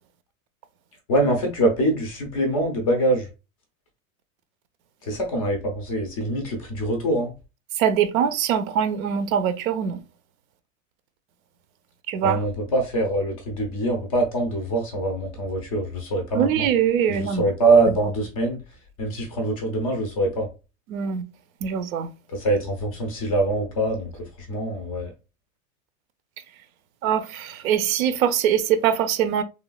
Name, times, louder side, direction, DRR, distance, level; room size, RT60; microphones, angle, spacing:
voice 1, 1.1-3.3 5.0-7.3 12.2-16.7 17.1-18.6 19.0-20.5 22.3-25.1, right 2 dB, 30° left, 0.4 m, -24 dB
voice 2, 7.8-10.0 12.1-12.4 16.3-17.5 20.9-21.2 21.6-22.1 27.0-29.4, right 8 dB, 75° right, 0.6 m, -23 dB
3.2 x 2.2 x 2.2 m
supercardioid pair, 170°, 42 cm